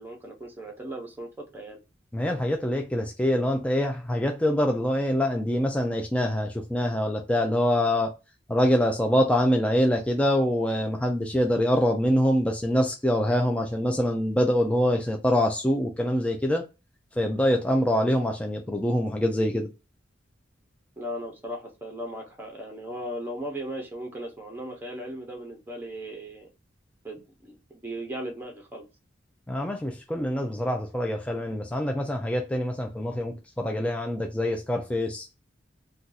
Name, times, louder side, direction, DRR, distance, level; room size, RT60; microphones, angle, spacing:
voice 1, 0.0-1.8 21.0-26.5 27.0-28.8, right 1 dB, 10° right, 0.7 m, -37 dB
voice 2, 2.1-8.1 8.5-16.6 17.2-19.7 29.5-35.3, equal, 5° left, 0.3 m, -25 dB
2.6 x 2.3 x 3.9 m
head